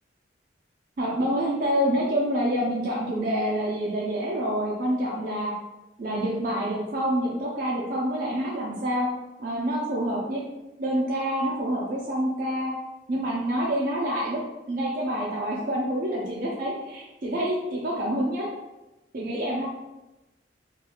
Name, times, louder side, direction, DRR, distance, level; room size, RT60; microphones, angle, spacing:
voice 1, 1.0-5.5 6.0-9.1 9.4-10.5 10.8-12.7 13.1-14.4 14.7-18.4 19.1-19.7, equal, 50° right, -4 dB, 0.4 m, -27 dB
2.4 x 2.2 x 2.8 m, 1.0 s
head